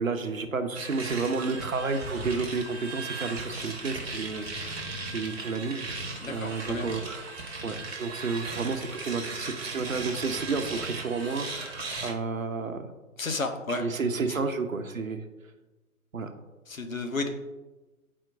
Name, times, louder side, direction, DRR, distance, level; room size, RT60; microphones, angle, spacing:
voice 1, 0.0-5.9 6.3-7.3 7.6-12.9 13.8-15.3 16.1-16.3, right 4 dB, 70° right, 7 dB, 0.9 m, -31 dB
sound 1, 0.7-12.1, right 3 dB, 45° right, 1.1 m, -37 dB
voice 2, 6.2-6.9 13.2-13.8 14.3-14.4 16.7-17.3, left 3 dB, 65° left, 5 dB, 1.0 m, -32 dB
8.8 x 4.4 x 2.5 m, 1.1 s
figure-of-eight pair, 135°, 43 cm